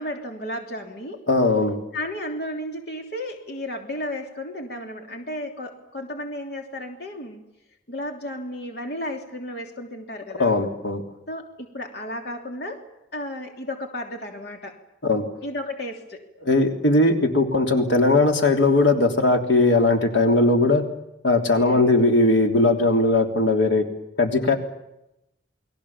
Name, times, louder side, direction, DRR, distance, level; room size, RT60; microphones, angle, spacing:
voice 1, 0.0-1.2 1.9-7.4 7.9-10.5 11.3-12.8 13.1-14.8 15.4-16.2 21.6-22.0, left 1 dB, 60° left, 3 dB, 3.2 m, -33 dB
voice 2, 1.3-1.8 10.4-11.0 15.0-15.2 16.4-20.8 21.2-23.8 24.2-24.6, left 2 dB, 80° left, 3 dB, 3.4 m, -19 dB
29.5 x 21.5 x 7.3 m, 0.88 s
head